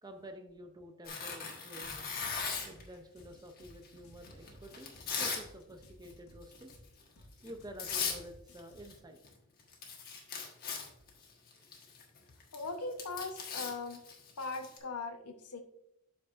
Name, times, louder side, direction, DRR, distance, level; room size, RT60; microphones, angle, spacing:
voice 1, 0.0-2.2 2.6-6.7 7.2-9.2 11.6-11.7, right 1 dB, 20° right, 5 dB, 0.5 m, -50 dB
Tearing, 1.1-2.8 3.6-5.5 5.8-6.1 6.5-6.8 7.5-7.6 7.8-8.2 8.5-9.3 9.6-14.8, left 5 dB, 40° left, 1.3 m, -39 dB
sound 1, 1.8-8.9, equal, 70° left, 1.6 m, -57 dB
voice 2, 12.5-14.0 14.4-15.6, left 3 dB, 90° left, 5 dB, 0.9 m, -39 dB
12.0 x 4.8 x 2.5 m, 0.80 s
head